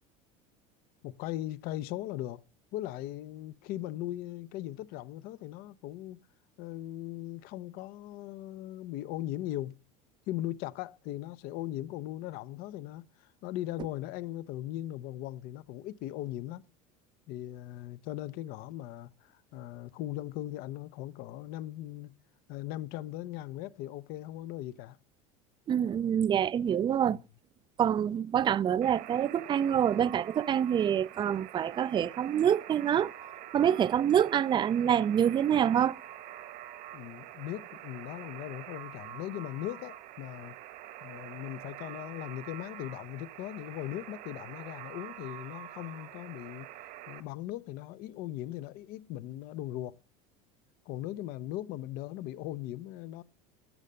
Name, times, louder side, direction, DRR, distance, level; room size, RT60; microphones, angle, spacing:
voice 1, 1.0-2.4 2.7-6.2 6.6-9.8 10.3-16.6 17.3-22.2 22.5-25.0 27.1-27.2 36.9-40.6 41.0-46.7 47.1-50.0 50.9-53.2, left 14 dB, 60° left, 0.8 m, -39 dB
voice 2, 25.7-27.2 27.8-33.1 33.5-36.0, right 9 dB, 25° right, 0.5 m, -26 dB
Alarm, 28.8-47.2, right 13 dB, 60° right, 1.5 m, -46 dB
12.0 x 7.4 x 6.6 m
supercardioid pair, 100°, 18 cm